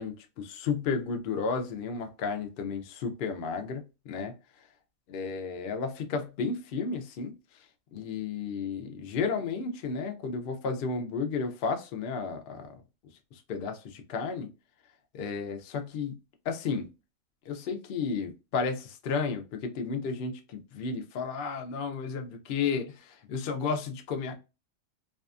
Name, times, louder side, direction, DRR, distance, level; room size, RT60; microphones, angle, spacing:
voice 1, 0.0-4.3 5.1-7.3 7.9-12.7 13.3-14.5 15.1-16.2 16.5-16.9 17.5-24.3, left 5 dB, 70° left, 0.5 m, -33 dB
2.6 x 2.3 x 2.3 m
omnidirectional pair, 1.4 m